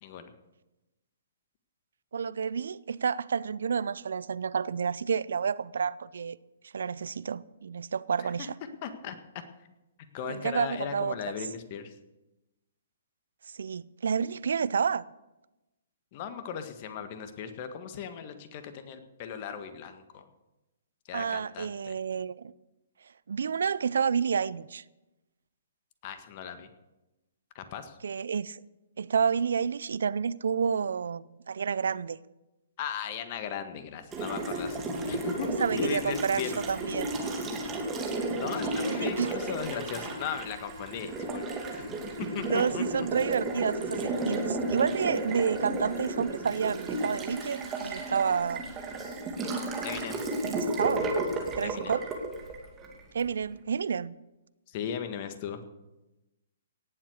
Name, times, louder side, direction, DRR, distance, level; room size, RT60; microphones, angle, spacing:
voice 1, 0.0-0.3 8.2-8.5 8.8-9.2 10.1-11.9 16.1-20.3 21.1-22.0 26.0-26.7 27.6-28.0 32.8-36.6 38.4-42.0 42.3-43.1 49.8-50.3 51.6-51.9 54.7-55.6, left 8 dB, 40° left, 1.6 m, -37 dB
voice 2, 2.1-6.4 6.6-8.5 10.3-11.1 13.5-15.1 21.1-22.5 23.3-24.8 28.0-28.6 29.0-32.2 35.4-37.1 38.8-39.3 42.4-48.7 50.4-51.1 51.6-52.0 53.1-54.1, right 6 dB, 70° right, 0.5 m, -30 dB
Water tap faucet, 34.1-53.3, right 2 dB, 20° right, 2.6 m, -33 dB
18.0 x 7.6 x 6.7 m
hypercardioid pair, 130°, 0 cm